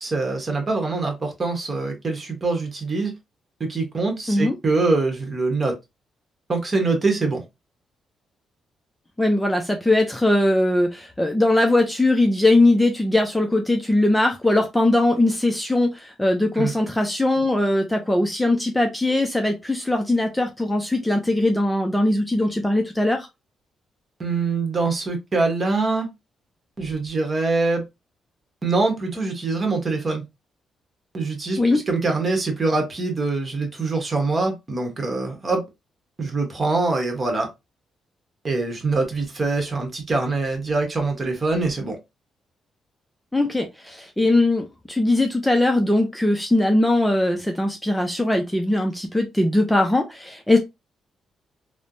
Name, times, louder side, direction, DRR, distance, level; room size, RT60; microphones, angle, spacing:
voice 1, 0.0-3.1 3.6-5.8 6.5-7.4 16.6-16.7 24.2-26.1 26.8-27.8 28.6-30.2 31.1-35.6 36.2-37.5 38.4-42.0, right 3 dB, 35° right, 1.1 m, -24 dB
voice 2, 9.2-23.3 31.6-31.8 43.3-50.6, left 1 dB, 10° left, 0.5 m, -20 dB
3.2 x 2.1 x 2.6 m
cardioid pair, 85°, 0 cm